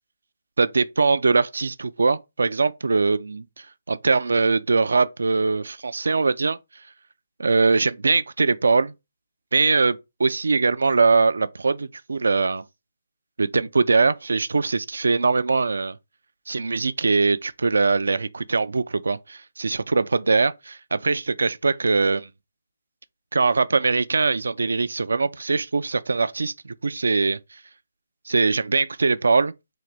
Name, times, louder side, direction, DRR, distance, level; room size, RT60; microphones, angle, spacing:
voice 1, 0.6-6.6 7.4-8.9 9.5-12.6 13.4-16.0 16.5-22.3 23.3-27.6 28.3-29.5, right 4 dB, 80° right, 0.4 m, -22 dB
3.9 x 2.9 x 3.3 m
hypercardioid pair, 160°, 0 cm